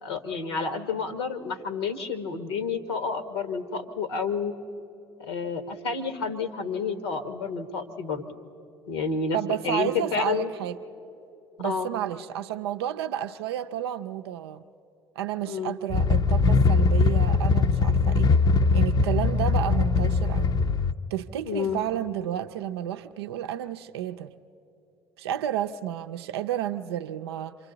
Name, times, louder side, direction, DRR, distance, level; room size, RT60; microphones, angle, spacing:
voice 1, 0.0-4.5 5.3-8.2 8.9-10.5 11.6-11.9 15.4-15.8 21.4-21.8, left 5 dB, 80° left, 9 dB, 1.3 m, -30 dB
voice 2, 9.3-10.8 11.6-14.6 15.2-18.3 18.7-20.5 21.1-24.3 25.2-27.6, right 11 dB, 80° right, 8 dB, 0.5 m, -31 dB
sound 1, 15.9-20.9, left 4 dB, 30° left, 0.6 m, -21 dB
28.0 x 24.5 x 3.9 m, 2.9 s
hypercardioid pair, 55°, 13 cm